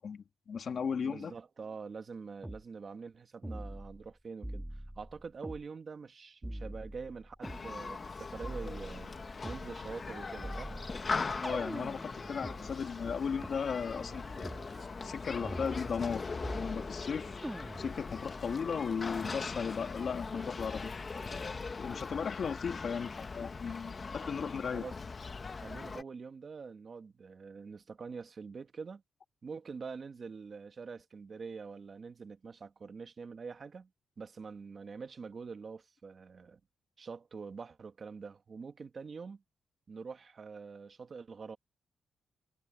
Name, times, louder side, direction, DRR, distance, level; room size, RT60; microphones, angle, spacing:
voice 1, 0.0-1.3 11.4-14.5 15.0-16.3 16.5-17.3 17.8-20.9 21.2-21.3 21.8-24.9, left 6 dB, 45° left, 2.0 m, -36 dB
voice 2, 1.0-9.2 9.4-10.7 24.7-24.9 25.5-29.0 29.4-33.9 34.2-36.6 37.0-39.4 39.9-41.6, right 5 dB, 35° right, 1.6 m, -45 dB
sound 1, 2.4-2.6 3.4-4.1 4.4-5.6 6.4-7.6 8.4-9.7 10.4-12.6 13.4-13.5 14.4-14.7 15.4-16.1 16.4-17.1 17.4-18.1, right 1 dB, 5° right, 2.5 m, -42 dB
Human group actions, 7.4-26.0, left 4 dB, 25° left, 1.1 m, -40 dB
sound 2, 8.5-21.1, right 9 dB, 65° right, 2.7 m, -61 dB
wide cardioid pair, 180°, 0 cm